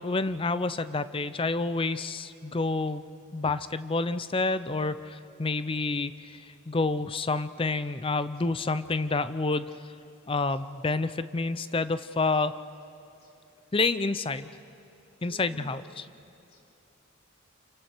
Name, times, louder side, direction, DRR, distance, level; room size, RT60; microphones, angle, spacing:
voice 1, 0.0-3.1 3.3-9.7 10.3-12.6 13.7-14.5 15.2-16.0, left 3 dB, 25° left, 13 dB, 0.5 m, -29 dB
voice 2, 9.7-10.6 11.0-11.2 11.6-12.1 12.3-12.5 12.8-14.0 14.8-15.8 16.5-16.7, right 2 dB, 80° left, -1 dB, 3.5 m, -58 dB
29.5 x 28.0 x 4.5 m, 2.7 s
head